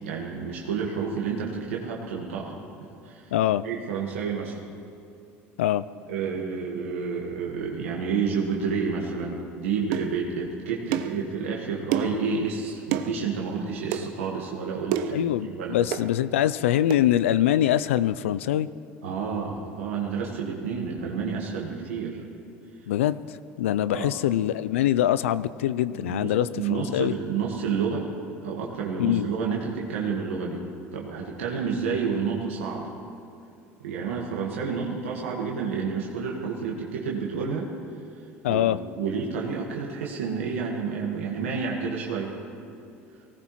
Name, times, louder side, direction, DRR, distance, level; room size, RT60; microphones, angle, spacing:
voice 1, 0.0-2.6 3.0-3.3 3.6-4.6 6.1-15.8 19.0-22.2 23.8-24.1 25.9-28.1 28.4-30.6 30.9-32.9 33.8-37.7 38.5-38.7 39.0-42.3, right 5 dB, 90° right, -2 dB, 1.6 m, -30 dB
voice 2, 3.3-3.6 5.6-5.8 15.1-18.7 22.9-27.1 29.0-29.3 38.4-38.8, left 12 dB, 85° left, 15 dB, 0.3 m, -24 dB
sound 1, 9.9-10.1 10.9-11.2 11.9-12.2 12.9-13.1 13.9-14.1 14.9-15.2 15.9-16.1 16.9-17.0, right 10 dB, 70° right, 0.8 m, -28 dB
19.5 x 17.5 x 3.1 m, 2.6 s
hypercardioid pair, 80°, 7 cm